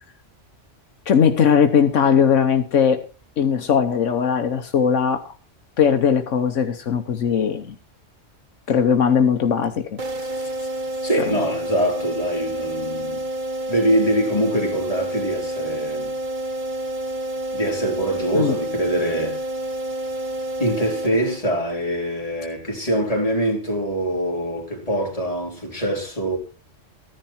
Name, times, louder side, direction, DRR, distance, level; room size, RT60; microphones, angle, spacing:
voice 1, 1.1-3.1 3.4-5.3 5.8-7.7 8.7-10.0 11.3-11.4 18.3-18.6, left 7 dB, 85° left, 1.3 m, -19 dB
sound 1, 10.0-21.7, right 1 dB, 40° right, 1.4 m, -29 dB
voice 2, 11.0-13.2 13.7-16.1 17.5-19.4 20.6-26.4, right 1 dB, 30° left, 3.6 m, -23 dB
14.5 x 11.0 x 4.4 m
omnidirectional pair, 1.2 m